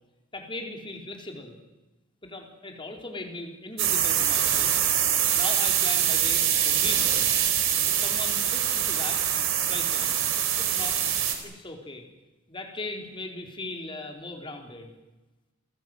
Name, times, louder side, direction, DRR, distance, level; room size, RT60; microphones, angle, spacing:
voice 1, 0.3-1.6 2.2-4.8 5.3-7.4 7.9-9.2 9.6-10.2 10.6-11.0 11.4-12.0 12.5-14.9, left 2 dB, 25° left, 2 dB, 4.2 m, -38 dB
sound 1, 3.8-11.3, right 9 dB, 75° right, 4.2 m, -24 dB
28.5 x 20.0 x 8.0 m, 1.1 s
head